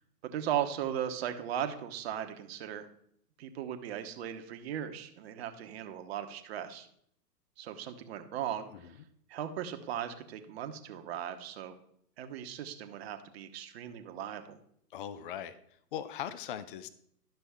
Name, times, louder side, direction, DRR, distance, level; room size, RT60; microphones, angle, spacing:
voice 1, 0.2-2.8 3.4-6.9 7.6-8.9 9.3-11.7 12.2-14.6, right 10 dB, 40° right, 7 dB, 1.0 m, -37 dB
voice 2, 14.9-15.6 15.9-16.9, left 10 dB, 35° left, 14 dB, 0.5 m, -39 dB
11.5 x 6.1 x 3.5 m, 0.70 s
figure-of-eight pair, 125°, 48 cm